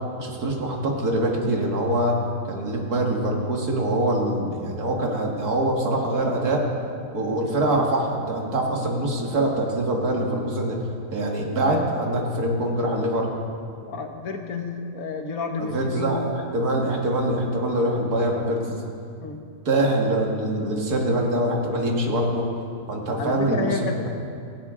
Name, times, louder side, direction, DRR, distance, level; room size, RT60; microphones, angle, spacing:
voice 1, 0.2-2.2 2.5-6.6 7.1-10.8 11.1-13.3 15.6-18.8 19.7-22.5 22.9-24.1, right 1 dB, 85° right, 0 dB, 2.4 m, -24 dB
voice 2, 13.8-16.2 19.2-19.4 23.2-24.1, left 4 dB, 70° left, 4 dB, 1.6 m, -30 dB
17.0 x 16.5 x 3.8 m, 2.4 s
omnidirectional pair, 1.6 m